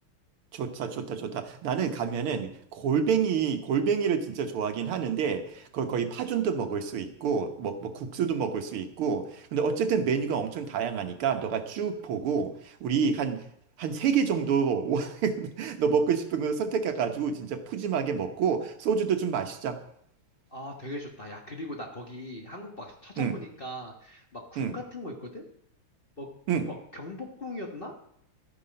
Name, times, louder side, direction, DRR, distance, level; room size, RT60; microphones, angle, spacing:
voice 1, 0.5-13.4 13.8-19.8 23.2-23.4 24.6-24.8 26.5-26.7, right 6 dB, 85° right, 7 dB, 2.1 m, -28 dB
voice 2, 20.5-25.4 26.2-26.3 26.7-27.9, left 1 dB, 30° left, 1 dB, 1.3 m, -40 dB
13.0 x 9.9 x 5.2 m, 0.71 s
omnidirectional pair, 2.3 m